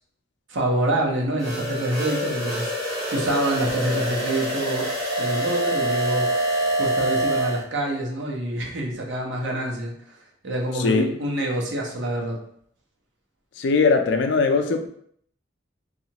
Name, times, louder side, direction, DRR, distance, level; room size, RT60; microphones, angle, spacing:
voice 1, 0.5-2.7 3.1-4.9 5.2-6.3 6.8-9.9 10.4-12.4, right 1 dB, 85° right, -2 dB, 0.8 m, -26 dB
sound 1, 1.4-7.6, equal, 50° right, 1.2 m, -26 dB
voice 2, 10.7-11.1 13.6-14.9, left 4 dB, 75° left, 6 dB, 0.4 m, -20 dB
2.8 x 2.4 x 2.8 m, 0.65 s
head